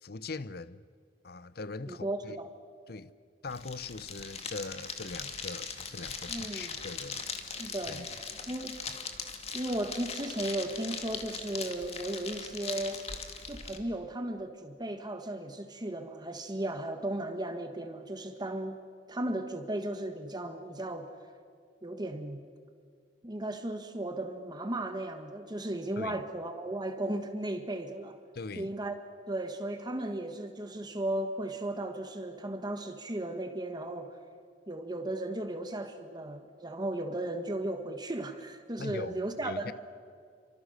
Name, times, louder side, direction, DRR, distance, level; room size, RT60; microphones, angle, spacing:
voice 1, 0.0-0.8 1.2-2.4 2.9-3.1 3.4-7.2 7.9-8.1 26.0-26.2 28.3-28.7 38.8-39.7, left 3 dB, 60° left, 0.8 m, -41 dB
voice 2, 1.9-2.5 6.3-6.8 7.6-8.0 8.5-8.8 9.5-13.0 13.5-18.8 19.1-21.1 21.8-22.4 23.2-28.2 28.5-29.0 29.3-34.2 34.7-39.7, right 1 dB, 25° right, 1.6 m, -35 dB
sound 1, 3.5-13.8, left 5 dB, 35° left, 2.2 m, -40 dB
29.5 x 24.5 x 6.6 m
head